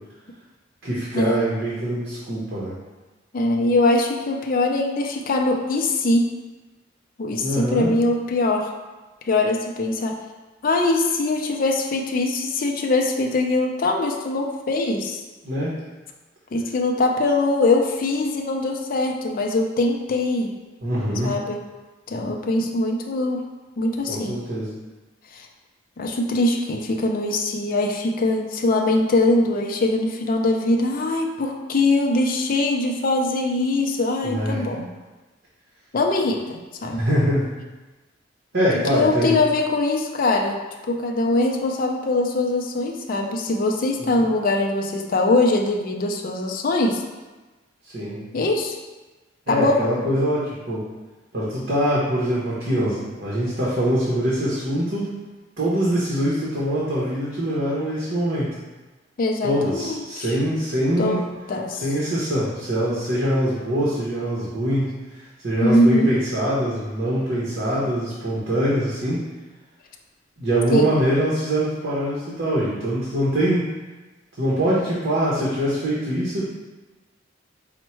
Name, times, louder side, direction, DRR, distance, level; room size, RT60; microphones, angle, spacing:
voice 1, 0.8-2.7 7.4-8.0 15.4-15.8 20.8-21.3 24.1-24.7 34.2-34.7 37.0-37.5 38.5-39.4 44.0-44.2 47.8-48.2 49.5-50.9 51.3-55.1 55.6-58.5 59.4-61.2 61.8-69.3 70.4-73.7 74.4-76.4, equal, 55° right, -7 dB, 0.9 m, -23 dB
voice 2, 3.3-6.3 7.2-8.7 9.3-10.2 10.6-15.2 16.5-20.5 21.2-21.6 22.1-23.5 23.8-24.4 25.3-25.5 26.0-34.9 35.9-37.0 38.9-40.6 40.9-47.0 48.3-48.8 49.5-49.8 59.2-60.3 61.0-61.2 61.5-61.8 65.6-66.1 70.7-70.9, left 2 dB, 45° left, 2 dB, 0.4 m, -22 dB
4.4 x 2.1 x 4.4 m, 1.2 s
head